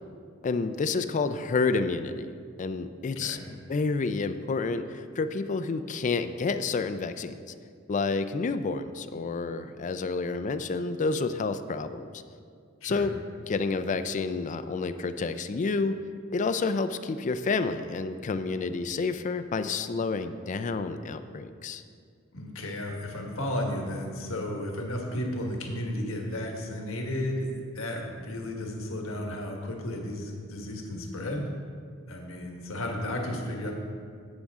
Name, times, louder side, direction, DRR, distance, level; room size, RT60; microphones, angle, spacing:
voice 1, 0.4-2.3 2.6-7.4 7.9-12.1 12.8-13.1 13.5-16.0 16.3-21.8, left 4 dB, 35° left, 10 dB, 0.4 m, -29 dB
voice 2, 22.3-27.5 27.7-31.5 32.1-33.7, left 1 dB, 80° left, 1 dB, 1.4 m, -33 dB
11.5 x 8.4 x 3.6 m, 2.2 s
head